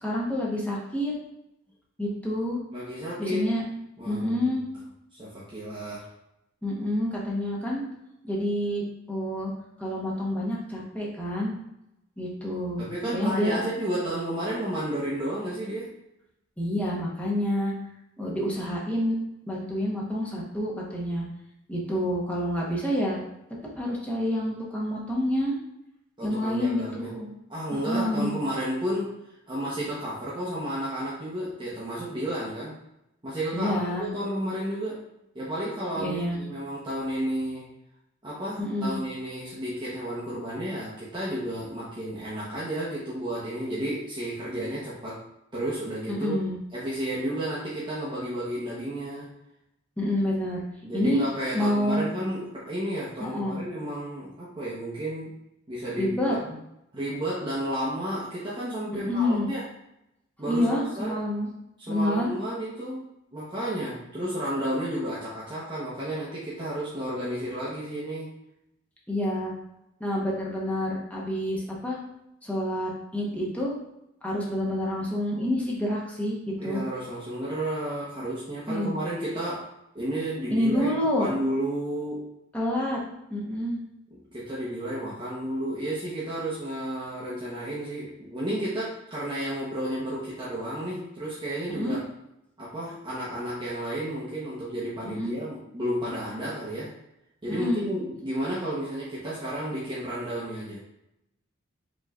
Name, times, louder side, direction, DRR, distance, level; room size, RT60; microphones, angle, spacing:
voice 1, 0.0-1.1 2.0-2.6 3.2-3.6 4.1-4.6 6.6-7.8 8.2-8.8 9.1-9.5 9.8-11.5 12.2-12.8 13.1-13.6 16.6-17.7 18.2-19.2 19.5-21.3 21.7-23.2 23.7-25.5 26.2-27.3 27.7-28.4 33.5-34.1 36.0-36.4 38.6-39.0 46.1-46.6 50.0-50.6 50.9-51.2 51.5-52.0 53.2-53.6 56.0-56.3 59.1-59.5 60.5-61.5 61.9-62.3 69.1-69.5 70.0-72.0 72.4-73.8 74.2-76.8 78.7-78.9 80.5-81.3 82.5-83.0 83.3-83.8 91.7-92.0 95.0-95.3 97.5-97.9, left 1 dB, 5° left, -4 dB, 0.9 m, -28 dB
voice 2, 2.7-3.5 4.0-4.6 5.2-6.1 12.8-15.9 21.9-22.1 26.2-27.1 27.5-29.1 29.5-32.7 33.2-35.0 35.3-37.7 38.2-45.2 45.5-46.4 46.7-49.3 50.8-55.3 55.7-56.6 56.9-59.6 60.4-61.2 61.8-63.0 63.3-68.3 76.6-79.7 79.9-82.3 84.3-92.0 92.6-96.9 97.4-100.8, right 1 dB, 25° right, -9 dB, 0.9 m, -32 dB
5.2 x 3.1 x 2.4 m, 0.84 s
head